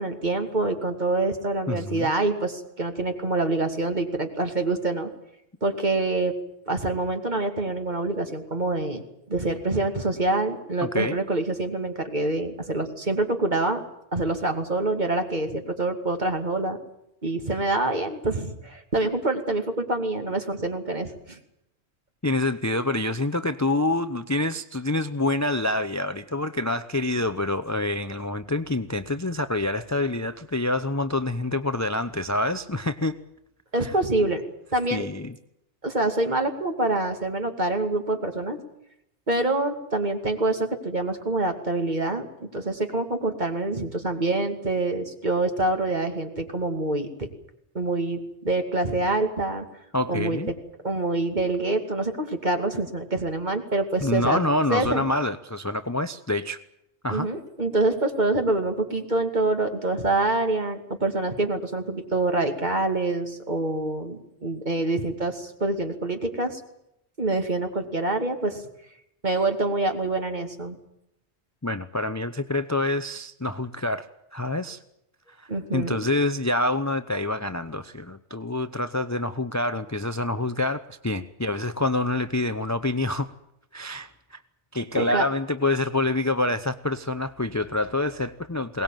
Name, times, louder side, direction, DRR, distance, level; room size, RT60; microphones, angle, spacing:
voice 1, 0.0-5.1 5.6-6.3 6.7-9.0 9.3-13.8 14.1-16.8 17.2-21.4 33.7-34.4 34.7-35.1 35.8-38.6 39.3-47.3 47.7-49.6 50.1-50.4 50.8-54.4 54.7-55.0 57.1-66.6 67.2-68.6 69.2-70.8 75.5-76.0 85.0-85.2, right 2 dB, 40° right, 5 dB, 2.7 m, -26 dB
voice 2, 1.7-2.1 10.8-11.2 22.2-33.2 33.8-33.9 34.9-35.3 49.9-50.5 54.0-56.6 57.0-57.3 71.6-74.1 74.3-74.8 75.3-83.3 83.7-84.4 84.7-88.8, left 2 dB, 15° left, 11 dB, 0.7 m, -27 dB
22.5 x 19.0 x 9.1 m, 0.80 s
omnidirectional pair, 1.2 m